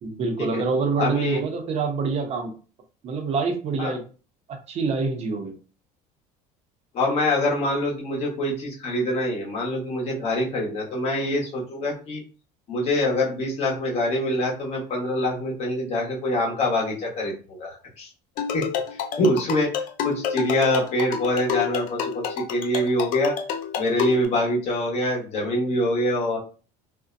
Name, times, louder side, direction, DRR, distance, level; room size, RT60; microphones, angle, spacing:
voice 1, 0.0-2.5 3.0-4.0 4.7-5.5, right 4 dB, 40° right, 5 dB, 0.6 m, -26 dB
voice 2, 1.0-1.4 3.8-3.9 6.9-12.2 12.7-18.1 18.5-18.6 18.9-19.7 20.0-23.3 23.8-26.4, left 1 dB, 40° left, -2 dB, 0.9 m, -25 dB
sound 1, 18.4-24.3, left 7 dB, 55° left, 0.4 m, -29 dB
2.6 x 2.1 x 2.4 m, 0.36 s
cardioid pair, 140°, 16 cm